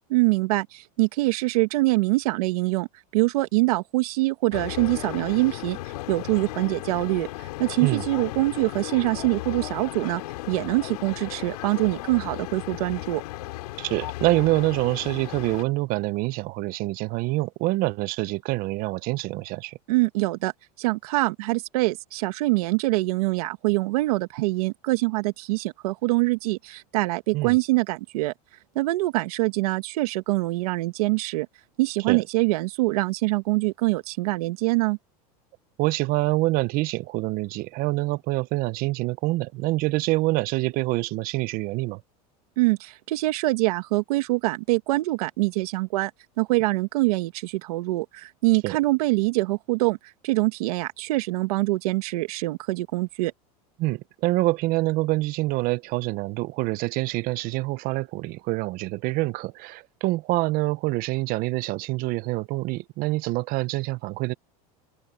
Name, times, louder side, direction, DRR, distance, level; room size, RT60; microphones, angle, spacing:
voice 1, 0.1-2.9 3.1-5.8 6.1-10.2 10.5-13.2 19.9-20.5 20.8-28.3 28.8-31.5 31.8-35.0 42.6-46.1 46.4-50.0 50.2-53.3, right 21 dB, 80° right, 2.1 m, -24 dB
sound 1, 4.5-15.6, left 18 dB, 85° left, 3.3 m, -35 dB
voice 2, 13.8-19.8 27.3-27.5 32.1-32.2 35.8-42.0 48.6-48.8 53.8-64.3, right 20 dB, 50° right, 0.7 m, -26 dB
open air
supercardioid pair, 125°, 19 cm